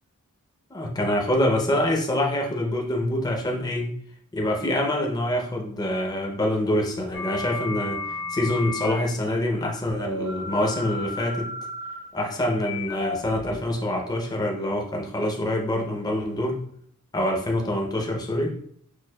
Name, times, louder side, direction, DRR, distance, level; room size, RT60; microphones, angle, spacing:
voice 1, 0.7-3.9 4.3-11.5 12.1-16.6 17.1-18.6, left 1 dB, 20° left, 0 dB, 0.6 m, -25 dB
sound 1, 7.1-9.0 10.0-14.0, left 2 dB, 60° left, 1.0 m, -34 dB
6.2 x 2.3 x 2.2 m, 0.64 s
head